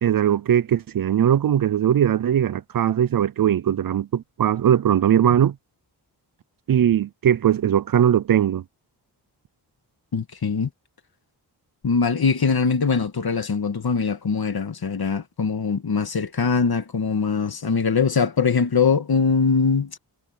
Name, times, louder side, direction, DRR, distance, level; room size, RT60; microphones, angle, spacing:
voice 1, 0.0-5.6 6.7-8.6, right 10 dB, 55° right, 0.5 m, -20 dB
voice 2, 10.1-10.7 11.8-20.0, left 5 dB, 65° left, 2.0 m, -22 dB
wide cardioid pair, 110°, 40 cm